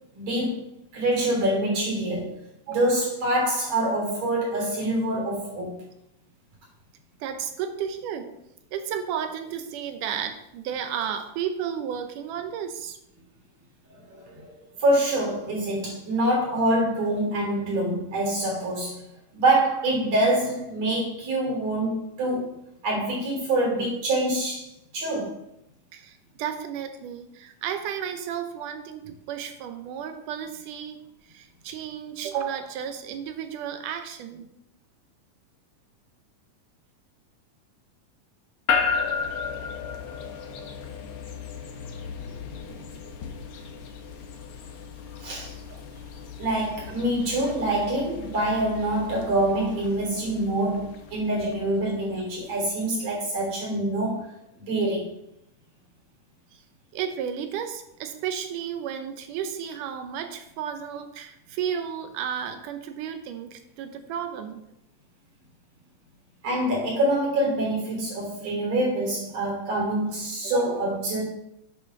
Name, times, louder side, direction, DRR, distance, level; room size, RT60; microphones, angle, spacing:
voice 1, 0.1-0.6 0.9-2.3 2.7-5.8 13.9-14.5 14.8-19.0 19.3-22.5 22.8-24.7 24.9-25.4 45.2-45.5 46.4-54.3 54.6-55.2 66.4-71.2, right 1 dB, 55° right, -2 dB, 4.5 m, -25 dB
voice 2, 7.2-8.3 8.7-13.0 25.9-31.0 31.3-34.5 45.7-45.8 56.5-56.6 56.9-64.6 70.4-70.8, right 8 dB, 80° right, 8 dB, 2.3 m, -33 dB
sound 1, 38.7-53.0, left 6 dB, 80° left, 1.1 m, -34 dB
8.4 x 5.4 x 5.9 m, 0.80 s
omnidirectional pair, 3.7 m